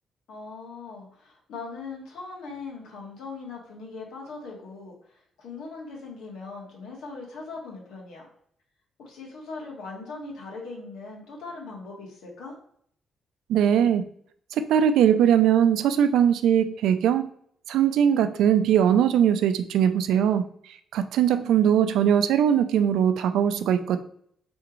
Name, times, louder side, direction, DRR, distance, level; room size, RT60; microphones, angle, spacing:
voice 1, 0.3-8.3 9.0-12.6 21.4-21.9, left 4 dB, 85° left, -2 dB, 1.6 m, -40 dB
voice 2, 13.5-14.0 14.5-17.3 17.7-20.4 20.9-24.0, right 9 dB, 85° right, 10 dB, 0.4 m, -20 dB
4.9 x 3.5 x 3.0 m, 0.64 s
cardioid pair, 135°, 0 cm